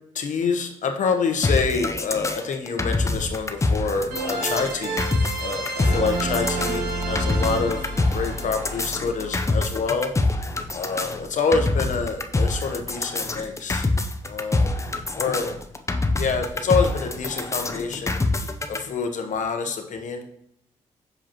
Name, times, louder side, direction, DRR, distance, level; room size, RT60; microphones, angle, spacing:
voice 1, 0.1-5.0 5.4-7.8 8.1-10.1 10.7-13.9 14.2-14.8 15.2-15.6 16.2-18.2 18.7-20.2, left 5 dB, 60° left, 5 dB, 1.0 m, -26 dB
sound 1, 1.3-1.4 4.1-10.0, right 2 dB, 90° right, 1.8 m, -30 dB
sound 2, 1.4-18.8, left 2 dB, 20° left, 0.6 m, -25 dB
6.5 x 4.9 x 2.9 m, 0.73 s
supercardioid pair, 60°, 14 cm